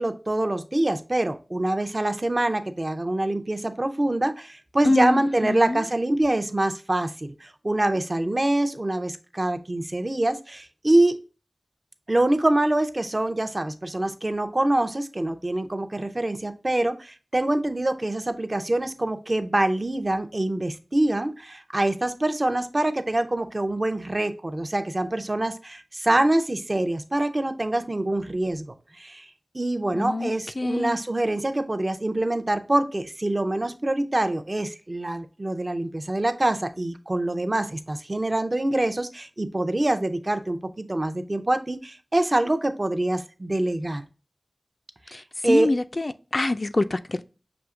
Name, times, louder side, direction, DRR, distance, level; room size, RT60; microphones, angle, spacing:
voice 1, 0.0-11.1 12.1-28.7 28.9-29.3 29.5-44.0 45.4-45.7, right 1 dB, 40° right, 0.5 m, -25 dB
voice 2, 4.8-5.8 29.9-31.0 45.1-45.2 45.5-47.2, left 2 dB, 50° left, 0.3 m, -25 dB
6.0 x 2.8 x 2.4 m
wide cardioid pair, 55°, 0 cm